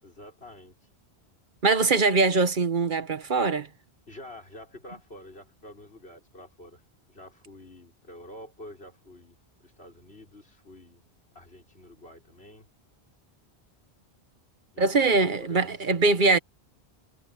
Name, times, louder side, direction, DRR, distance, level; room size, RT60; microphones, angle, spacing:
voice 1, 0.0-0.9 4.1-9.3 9.6-11.0 11.3-12.7 14.7-15.9, left 1 dB, 70° left, 6.5 m, -48 dB
voice 2, 1.6-3.7 14.8-16.4, right 3 dB, 50° right, 1.4 m, -22 dB
omnidirectional pair, 1.1 m